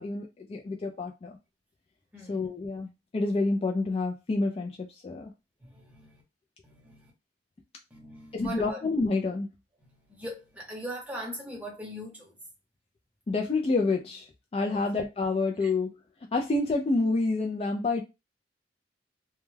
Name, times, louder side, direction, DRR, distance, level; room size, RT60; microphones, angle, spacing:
voice 1, 0.0-1.4 2.3-5.3 8.3-9.5 13.3-15.9 16.3-18.0, left 3 dB, 35° left, 0.3 m, -28 dB
voice 2, 2.1-2.5 5.6-6.2 6.6-7.1 7.9-8.8 9.8-12.4 14.7-14.9 15.6-15.7, equal, 10° right, 0.8 m, -41 dB
2.2 x 2.2 x 3.1 m
head